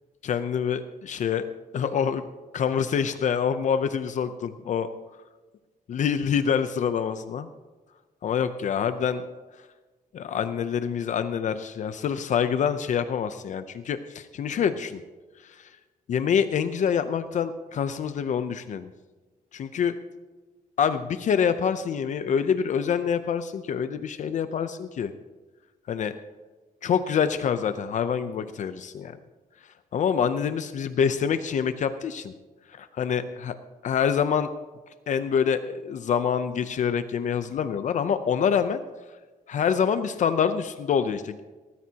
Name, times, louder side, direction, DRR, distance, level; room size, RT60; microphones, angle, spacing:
voice 1, 0.2-1.5 1.7-2.3 2.5-4.9 5.9-7.5 8.2-9.2 10.1-15.0 15.5-15.7 16.1-18.9 19.5-19.9 20.8-25.1 25.9-26.1 26.8-29.2 29.9-32.3 32.7-33.5 33.8-34.5 35.1-38.8 39.5-41.4, left 7 dB, 55° left, 10 dB, 0.6 m, -26 dB
19.5 x 14.0 x 2.9 m, 1.3 s
wide cardioid pair, 175°, 15 cm